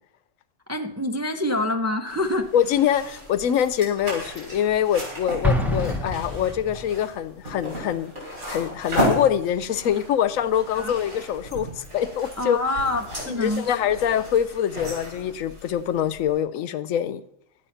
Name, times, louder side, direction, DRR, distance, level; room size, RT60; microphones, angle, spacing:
voice 1, 0.7-2.5 10.7-10.9 12.4-13.8, left 2 dB, 20° right, 5 dB, 0.4 m, -26 dB
sound 1, 2.1-16.4, equal, 75° right, 4.8 m, -34 dB
voice 2, 2.5-8.1 8.5-12.7 13.3-17.2, left 9 dB, 85° left, 14 dB, 1.1 m, -24 dB
Explosion, 5.4-7.0, left 1 dB, ahead, 1.1 m, -25 dB
12.0 x 8.2 x 5.6 m, 0.78 s
omnidirectional pair, 1.3 m